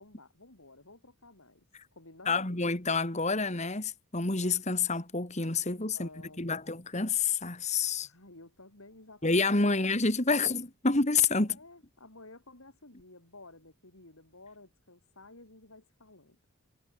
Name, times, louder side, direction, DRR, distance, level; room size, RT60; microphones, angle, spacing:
voice 1, 0.0-1.6 1.9-2.6 5.9-6.6 8.0-10.0 11.4-16.4, left 2 dB, 70° left, 5.1 m, -53 dB
voice 2, 2.3-6.1 6.4-8.1 9.2-11.6, left 4 dB, 30° left, 2.0 m, -28 dB
head